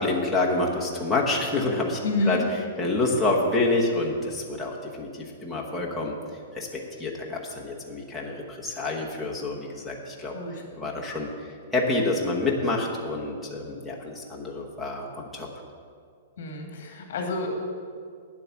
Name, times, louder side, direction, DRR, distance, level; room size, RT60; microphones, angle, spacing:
voice 1, 0.0-2.0 2.3-2.4 2.8-6.1 6.5-11.3 11.7-15.5, left 2 dB, ahead, -5 dB, 1.0 m, -27 dB
voice 2, 2.0-2.4 10.3-10.6 16.4-17.5, left 3 dB, 50° left, 1 dB, 2.2 m, -28 dB
9.1 x 7.7 x 7.0 m, 2.2 s
hypercardioid pair, 180°, 0 cm